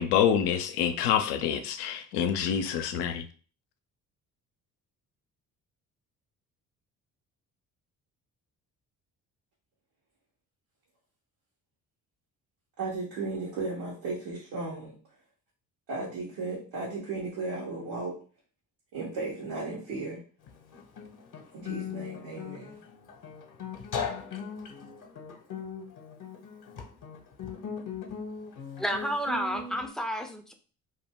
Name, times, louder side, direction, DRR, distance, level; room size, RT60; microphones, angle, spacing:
voice 1, 0.0-3.2, left 8 dB, 75° left, 9 dB, 0.5 m, -26 dB
voice 2, 12.8-15.0 15.9-18.1 18.9-20.2 21.5-22.8, right 3 dB, 75° right, -6 dB, 1.2 m, -35 dB
Guitar, 20.5-29.9, left 6 dB, 50° left, 0.8 m, -39 dB
voice 3, 28.8-30.5, equal, ahead, 4 dB, 0.5 m, -31 dB
2.7 x 2.1 x 3.4 m, 0.40 s
hypercardioid pair, 55°, 43 cm